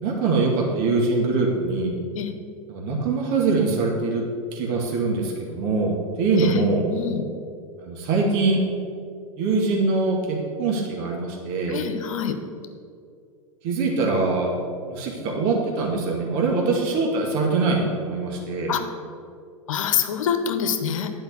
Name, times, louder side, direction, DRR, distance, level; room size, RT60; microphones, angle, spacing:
voice 1, 0.0-2.0 2.7-4.2 4.5-6.9 7.8-8.6 9.4-11.8 13.6-14.5 14.9-18.7, right 3 dB, 45° right, -1 dB, 2.1 m, -23 dB
voice 2, 6.9-7.2 11.7-12.4 18.7-18.8 19.7-21.1, left 8 dB, 65° left, 8 dB, 1.1 m, -25 dB
10.5 x 5.4 x 8.0 m, 2.3 s
figure-of-eight pair, 95°, 18 cm